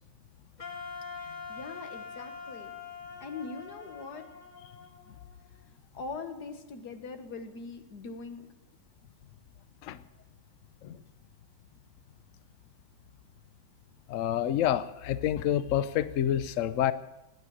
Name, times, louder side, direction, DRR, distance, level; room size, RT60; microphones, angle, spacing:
Wind instrument woodwind instrument, 0.6-5.6, left 5 dB, 25° left, 1.6 m, -44 dB
voice 1, 1.1-2.7 3.2-4.3 5.5-5.6 5.9-8.5, left 4 dB, 55° left, 7 dB, 1.8 m, -42 dB
voice 2, 14.1-16.9, left 11 dB, 80° left, 14 dB, 0.7 m, -28 dB
17.5 x 9.6 x 8.6 m, 0.98 s
omnidirectional pair, 2.1 m